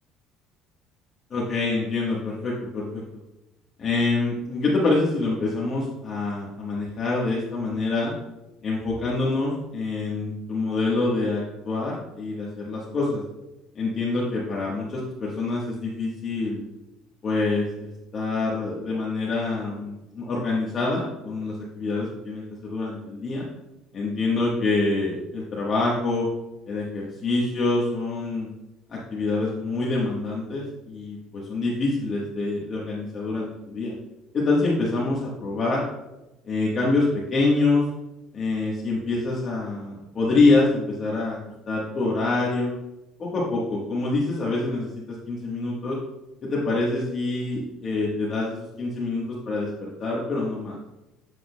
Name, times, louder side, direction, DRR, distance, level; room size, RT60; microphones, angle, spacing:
voice 1, 1.3-3.0 3.8-8.1 8.6-13.2 13.7-16.6 17.2-23.4 23.9-26.3 26.7-28.5 28.9-33.9 34.3-35.8 36.4-37.9 38.3-41.4 41.7-42.7 43.2-46.0 46.4-50.8, left 3 dB, 35° left, -6 dB, 1.2 m, -26 dB
8.0 x 6.2 x 2.2 m, 0.97 s
cardioid pair, 140°, 0 cm